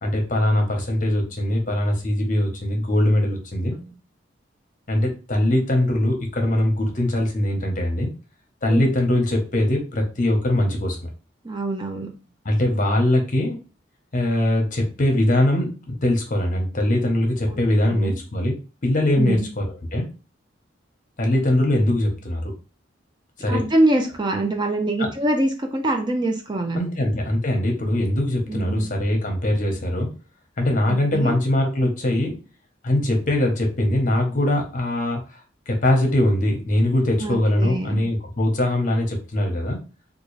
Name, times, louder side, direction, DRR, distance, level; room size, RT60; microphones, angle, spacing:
voice 1, 0.0-3.8 4.9-8.1 8.6-11.1 12.4-13.6 14.1-18.5 18.8-20.1 21.2-22.5 23.4-23.6 26.7-30.1 30.6-32.4 32.8-35.4 35.7-39.8, left 1 dB, 45° left, 2 dB, 0.9 m, -22 dB
voice 2, 11.4-12.1 17.5-18.2 19.2-19.5 23.5-26.8 28.5-28.9 30.9-31.4 37.2-38.1, right 1 dB, 25° right, 4 dB, 0.5 m, -24 dB
3.7 x 2.5 x 3.1 m, 0.33 s
head